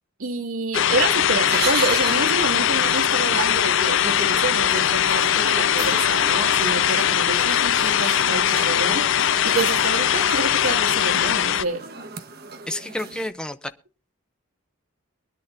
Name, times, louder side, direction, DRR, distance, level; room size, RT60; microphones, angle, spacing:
voice 1, 0.2-9.0 9.4-11.8, right 3 dB, 85° right, 2.4 m, -28 dB
sound 1, 0.7-11.6, left 10 dB, 60° left, 0.5 m, -20 dB
sound 2, 0.7-13.3, right 5 dB, 45° right, 1.2 m, -36 dB
voice 2, 12.7-13.7, left 1 dB, 5° left, 0.6 m, -30 dB
23.5 x 10.5 x 2.7 m
head